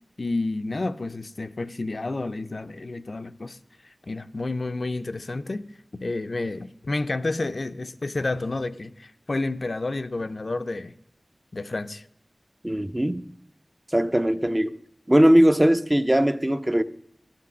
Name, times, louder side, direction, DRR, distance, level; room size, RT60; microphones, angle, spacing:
voice 1, 0.2-3.6 3.8-5.7 5.9-10.9 11.5-12.1, left 2 dB, 65° left, 0.4 m, -30 dB
voice 2, 12.6-13.2 13.9-14.7 15.1-16.8, equal, 20° right, 0.5 m, -20 dB
12.0 x 5.9 x 6.1 m
wide cardioid pair, 50°, 0 cm